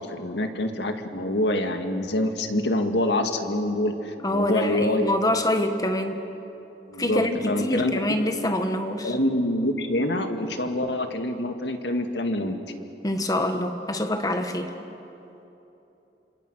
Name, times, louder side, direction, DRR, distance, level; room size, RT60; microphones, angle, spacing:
voice 1, 0.0-5.1 6.9-8.2 9.0-12.6, left 1 dB, 80° left, 6 dB, 1.9 m, -26 dB
voice 2, 4.2-6.2 7.0-9.2 13.0-14.7, left 1 dB, 20° left, 6 dB, 1.6 m, -25 dB
28.0 x 26.5 x 6.3 m, 3.0 s
head